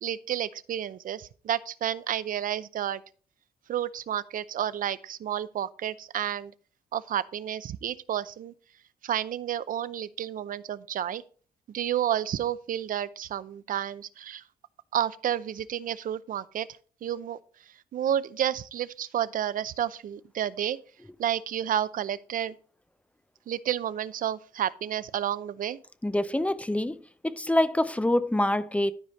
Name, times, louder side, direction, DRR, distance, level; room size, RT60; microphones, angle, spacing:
voice 1, 0.0-3.0 3.7-6.5 6.9-8.5 9.0-11.2 11.7-14.4 14.9-16.7 17.0-17.4 17.9-20.8 21.2-22.5 23.5-25.8, right 10 dB, 55° right, 0.6 m, -30 dB
voice 2, 26.0-28.9, left 1 dB, 10° left, 0.5 m, -26 dB
12.5 x 5.0 x 4.1 m
cardioid pair, 125°, 16 cm